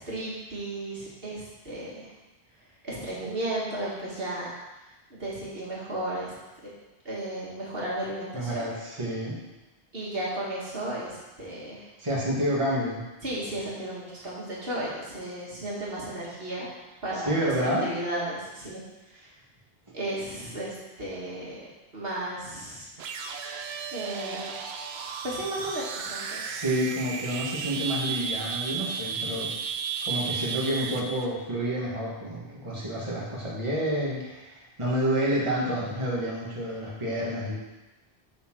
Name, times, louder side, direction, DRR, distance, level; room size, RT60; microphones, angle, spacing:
voice 1, 0.0-2.1 2.8-4.5 5.1-6.3 7.0-8.7 9.9-11.9 13.2-16.7 17.0-18.8 19.1-19.3 19.9-21.7 21.9-22.9 23.9-24.5 25.2-26.4, right 1 dB, 70° right, -6 dB, 2.2 m, -34 dB
voice 2, 8.3-9.4 12.0-13.0 17.2-17.9 26.4-29.5 30.0-37.5, equal, 30° right, -6 dB, 1.7 m, -29 dB
sound 1, 23.0-31.3, right 6 dB, 85° right, 0.9 m, -34 dB
8.3 x 4.4 x 6.1 m, 1.1 s
omnidirectional pair, 1.0 m